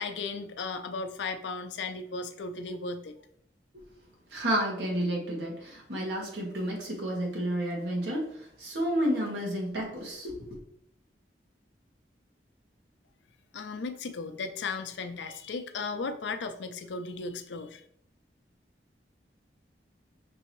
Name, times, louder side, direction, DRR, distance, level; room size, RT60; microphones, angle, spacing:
voice 1, 0.0-3.2 13.5-17.8, left 4 dB, 85° left, 8 dB, 0.5 m, -36 dB
voice 2, 4.3-8.3 8.6-10.4, right 1 dB, 80° right, -3 dB, 1.5 m, -30 dB
6.1 x 2.7 x 3.0 m, 0.68 s
head